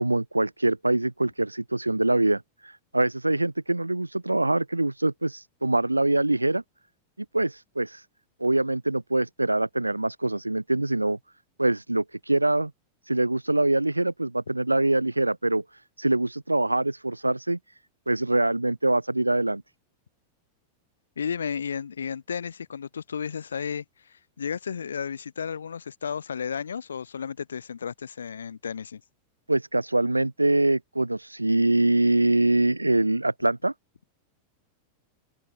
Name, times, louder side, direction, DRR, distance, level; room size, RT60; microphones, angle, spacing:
voice 1, 0.0-2.4 2.9-6.6 7.3-8.0 8.4-11.2 11.6-12.7 13.1-15.6 16.0-17.6 18.1-19.6 29.5-33.7, right 2 dB, 85° right, 1.7 m, -24 dB
voice 2, 21.2-29.0, left 7 dB, 70° left, 2.9 m, -33 dB
figure-of-eight pair, 90°, 0 cm